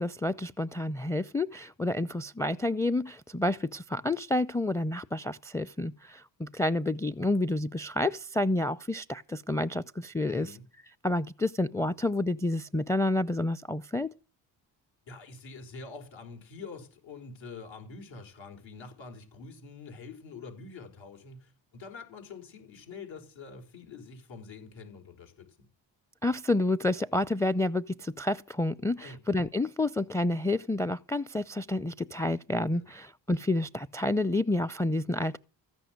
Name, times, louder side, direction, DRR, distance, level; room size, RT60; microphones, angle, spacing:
voice 1, 0.0-10.6 11.0-14.1 26.2-35.4, left 2 dB, 5° left, 0.6 m, -29 dB
voice 2, 10.3-10.7 15.1-25.7 29.0-29.2 32.7-32.9, left 4 dB, 65° left, 5.4 m, -46 dB
15.0 x 6.0 x 9.4 m
supercardioid pair, 55°, 48 cm